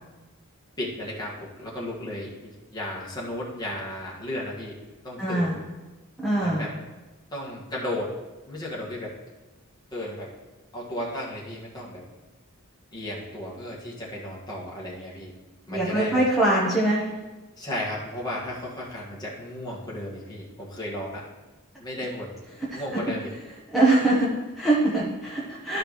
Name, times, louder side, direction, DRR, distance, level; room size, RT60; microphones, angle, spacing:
voice 1, 0.8-4.8 5.0-5.6 6.4-6.7 7.3-8.1 8.5-9.1 9.9-10.3 10.7-12.0 12.9-15.3 15.7-16.2 17.6-21.3 21.8-22.3 22.7-23.3, left 1 dB, 20° left, -5 dB, 1.7 m, -34 dB
voice 2, 5.2-5.6 6.2-6.6 15.7-17.1 22.7-22.8 23.7-25.8, right 2 dB, ahead, -8 dB, 1.1 m, -23 dB
13.0 x 4.9 x 3.1 m, 1.2 s
head